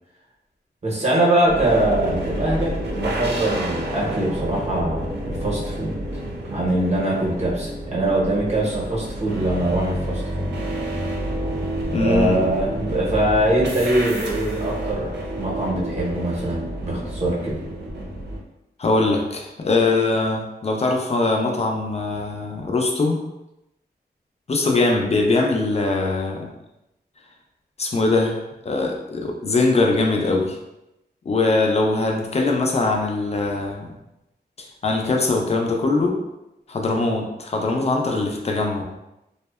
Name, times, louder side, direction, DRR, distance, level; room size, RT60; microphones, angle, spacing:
voice 1, 0.8-6.0 6.5-10.5 12.0-15.1 15.4-17.6, right 1 dB, 40° right, -5 dB, 0.8 m, -22 dB
sound 1, 1.5-18.4, right 1 dB, 75° right, 0.6 m, -29 dB
voice 2, 11.9-12.5 18.8-23.2 24.5-26.5 27.8-28.4 28.6-30.6 31.3-33.9 34.6-36.2 36.7-38.8, left 3 dB, 40° left, 2 dB, 0.4 m, -21 dB
2.6 x 2.1 x 2.2 m, 0.90 s
wide cardioid pair, 125°, 18 cm